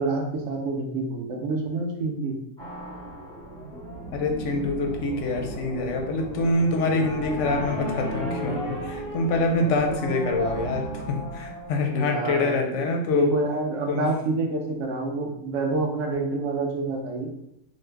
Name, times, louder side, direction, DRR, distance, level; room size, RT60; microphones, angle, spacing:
voice 1, 0.0-2.4 11.9-17.3, right 3 dB, 65° right, 1 dB, 0.9 m, -28 dB
sound 1, 2.6-12.6, equal, 5° left, 0.7 m, -34 dB
voice 2, 4.1-13.3 13.9-14.1, left 3 dB, 65° left, 2 dB, 0.8 m, -25 dB
3.2 x 2.1 x 3.3 m, 0.82 s
omnidirectional pair, 1.5 m